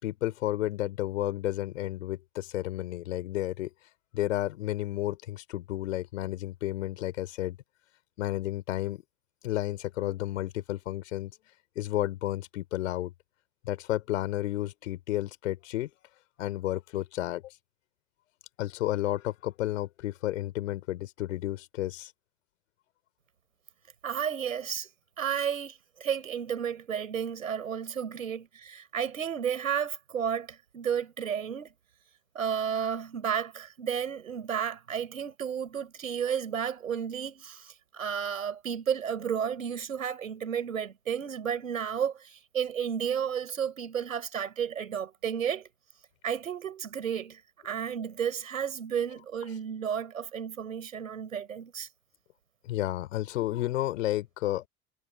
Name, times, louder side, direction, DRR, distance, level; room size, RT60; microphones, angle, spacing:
voice 1, 0.0-3.7 4.1-7.6 8.2-9.0 9.4-11.3 11.7-13.1 13.6-15.9 16.4-17.5 18.6-22.1 52.6-54.7, left 15 dB, 70° left, 4.7 m, -32 dB
voice 2, 24.0-24.9 25.2-31.7 32.3-45.7 46.2-51.9, right 8 dB, 80° right, 5.5 m, -32 dB
figure-of-eight pair, 65°, 40 cm